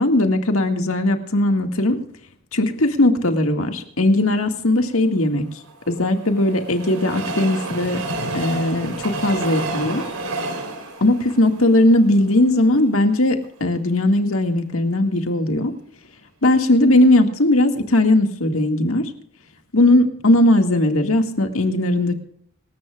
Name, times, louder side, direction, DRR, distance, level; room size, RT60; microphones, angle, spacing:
voice 1, 0.0-2.0 2.5-5.4 5.9-8.0 8.3-8.9 9.2-10.0 11.0-15.7 16.4-19.1 19.7-22.1, left 1 dB, 70° left, 5 dB, 2.0 m, -18 dB
Train, 5.4-12.6 13.1-13.2 13.4-13.5, right 2 dB, 80° right, 3.7 m, -30 dB
26.5 x 14.0 x 2.5 m, 0.66 s
head